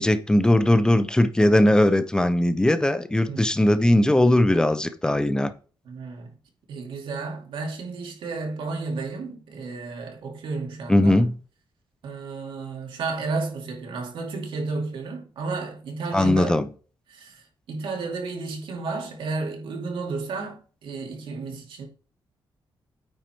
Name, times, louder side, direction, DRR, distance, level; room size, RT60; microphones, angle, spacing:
voice 1, 0.0-5.5 10.9-11.4 16.1-16.7, left 1 dB, 10° left, 0.7 m, -19 dB
voice 2, 5.8-6.3 6.7-11.2 12.0-16.6 17.1-17.4 17.7-21.9, right 3 dB, 85° right, 2.6 m, -32 dB
9.0 x 4.9 x 4.5 m
wide cardioid pair, 135°, 8 cm